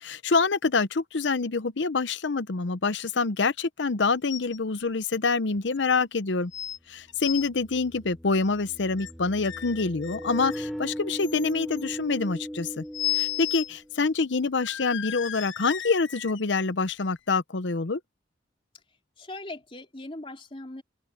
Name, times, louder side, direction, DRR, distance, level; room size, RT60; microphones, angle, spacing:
voice 1, 0.0-6.5 6.9-12.8 13.2-18.0, left 4 dB, 70° left, 0.8 m, -26 dB
sound 1, 4.3-4.6 4.9-5.0 5.7-5.8 6.5-6.8 7.1-7.5 8.6-9.1 9.4-10.7 11.2-11.8 12.9-13.7 14.0-14.1 14.6-16.4 17.0-17.1, left 14 dB, 85° left, 1.1 m, -34 dB
sound 2, 5.6-5.7 7.1-14.0, equal, ahead, 3.2 m, -38 dB
voice 2, 19.2-20.8, left 2 dB, 30° left, 3.2 m, -40 dB
open air
head